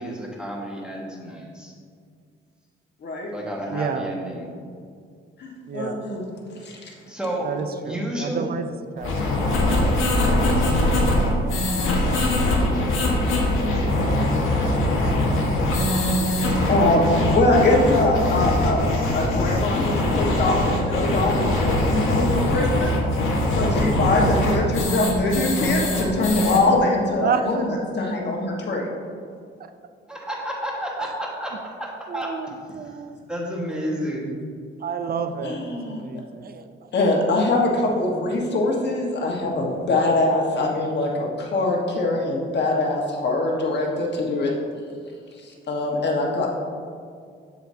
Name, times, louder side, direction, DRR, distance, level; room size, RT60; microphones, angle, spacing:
voice 1, 0.0-1.7 3.3-4.5 6.6-6.7 7.1-7.5 7.8-8.5 30.1-32.3 32.8-33.0 33.3-34.4, equal, 5° right, -3 dB, 1.6 m, -31 dB
voice 2, 3.7-4.1 5.7-6.1 7.4-9.4 27.2-27.7 31.0-31.1 32.1-33.2 34.8-36.9, right 6 dB, 45° right, 9 dB, 0.5 m, -30 dB
voice 3, 5.4-6.2 6.6-6.9 16.6-17.1 17.3-22.9 23.5-28.9 35.4-36.0 36.9-44.5 45.4-46.5, left 2 dB, 55° left, -1 dB, 1.5 m, -23 dB
sound 1, 9.0-26.6, left 1 dB, 70° left, 1.6 m, -22 dB
7.5 x 7.0 x 2.8 m, 2.2 s
cardioid pair, 95°, 21 cm